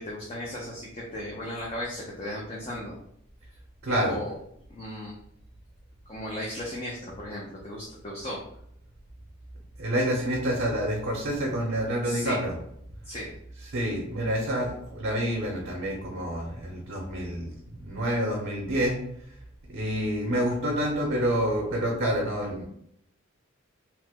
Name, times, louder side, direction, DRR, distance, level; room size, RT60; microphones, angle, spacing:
voice 1, 0.0-3.0 4.0-4.4 4.7-5.2 6.1-8.4 12.0-12.4 13.0-13.3, left 1 dB, 30° left, -4 dB, 0.5 m, -36 dB
voice 2, 3.8-4.2 9.8-12.5 13.7-19.0 19.7-22.6, equal, 50° right, -2 dB, 0.6 m, -28 dB
2.9 x 2.0 x 3.4 m, 0.71 s
head